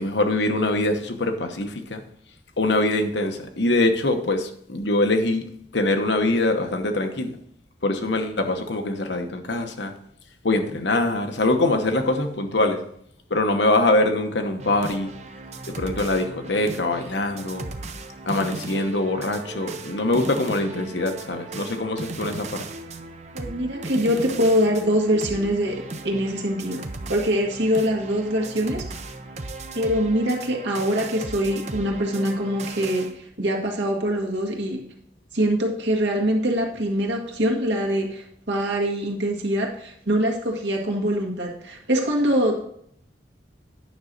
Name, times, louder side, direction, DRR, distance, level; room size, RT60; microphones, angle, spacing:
voice 1, 0.0-2.0 2.6-5.4 5.7-7.4 7.8-9.9 10.4-12.8 13.3-15.1 15.7-17.7 18.3-22.5, left 2 dB, 70° left, 5 dB, 1.1 m, -23 dB
sound 1, 14.6-33.1, right 3 dB, 35° right, 0.7 m, -37 dB
voice 2, 23.3-26.8 27.1-28.9 29.7-34.8 35.3-42.7, equal, 75° right, 0 dB, 1.8 m, -24 dB
9.5 x 6.2 x 4.1 m, 0.69 s
head